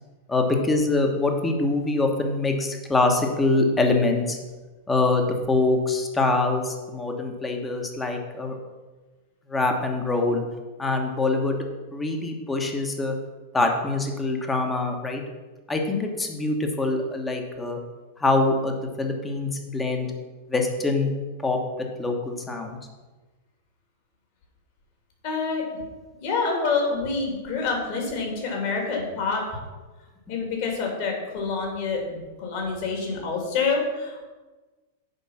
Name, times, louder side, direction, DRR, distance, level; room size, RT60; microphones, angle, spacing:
voice 1, 0.3-4.4 4.9-8.6 9.5-10.4 10.8-11.6 11.9-13.1 13.5-15.2 15.7-17.8 18.2-20.1 20.5-21.1 21.4-22.8, left 2 dB, 15° left, 3 dB, 1.3 m, -24 dB
voice 2, 25.2-25.6 26.2-29.4 30.3-34.3, left 4 dB, 50° left, 0 dB, 2.7 m, -27 dB
8.2 x 5.2 x 5.9 m, 1.2 s
figure-of-eight pair, 95°, 0 cm